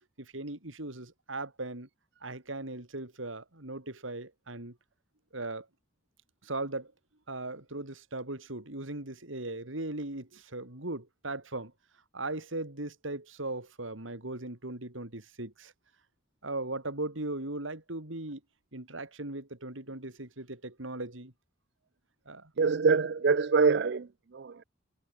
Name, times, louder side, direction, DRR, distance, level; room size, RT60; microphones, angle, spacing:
voice 1, 0.2-1.9 2.2-4.8 5.3-5.7 6.4-6.9 7.3-11.7 12.1-15.7 16.4-18.4 18.7-21.3 22.3-22.5, right 2 dB, 80° right, 3.6 m, -38 dB
voice 2, 22.6-24.6, right 5 dB, 55° right, 0.5 m, -25 dB
head